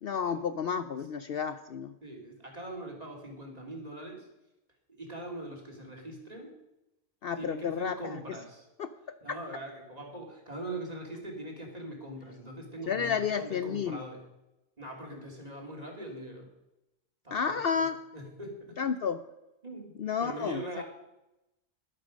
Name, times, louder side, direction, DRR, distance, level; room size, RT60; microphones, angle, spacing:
voice 1, 0.0-1.9 7.2-8.4 8.8-8.9 9.3-9.4 12.9-14.0 17.3-18.0 18.8-19.2 20.0-20.6, left 6 dB, 60° left, 11 dB, 0.7 m, -31 dB
voice 2, 2.0-4.3 5.0-6.5 7.4-8.7 9.2-14.2 14.8-16.5 17.2-17.9 18.1-18.8 19.6-19.9 20.2-20.8, right 1 dB, 35° right, 0 dB, 2.9 m, -42 dB
12.5 x 11.5 x 5.2 m, 0.93 s
omnidirectional pair, 1.2 m